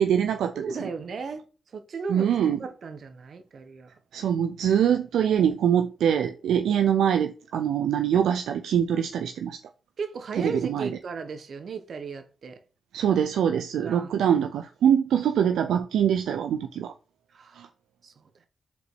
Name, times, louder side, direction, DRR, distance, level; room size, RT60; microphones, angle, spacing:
voice 1, 0.0-0.7 2.1-2.6 4.1-9.6 10.4-10.9 12.9-16.9 17.6-17.7, right 9 dB, 85° right, 0.4 m, -24 dB
voice 2, 0.6-1.4 1.7-2.3 2.6-4.0 10.0-12.6 13.8-14.1 17.3-17.7 18.0-18.2, right 5 dB, 65° right, 1.2 m, -36 dB
5.3 x 4.0 x 4.6 m
cardioid pair, 55°, 0 cm